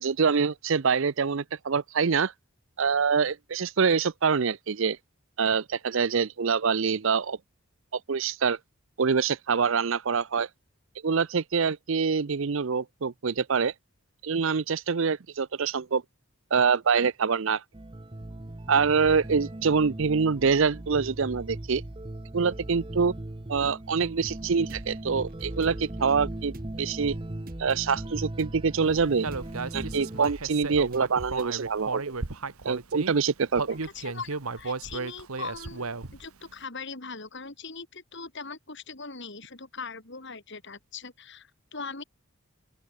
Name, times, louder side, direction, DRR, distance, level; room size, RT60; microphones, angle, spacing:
voice 1, 0.0-2.3 2.8-5.0 5.4-7.4 8.1-8.6 9.0-10.5 11.0-13.7 14.2-16.0 16.5-17.6 18.7-21.8 22.3-23.1 23.5-27.2 27.6-29.3 29.7-32.2 32.6-33.8, right 5 dB, 60° right, 0.6 m, -25 dB
sound 1, 17.7-30.2, right 1 dB, 25° right, 0.7 m, -38 dB
sound 2, 24.2-33.9, right 1 dB, 40° right, 2.9 m, -47 dB
Human voice, 29.2-33.1 33.5-36.3, right 4 dB, 80° right, 1.4 m, -34 dB
voice 2, 33.8-42.0, left 4 dB, 55° left, 3.1 m, -40 dB
open air
head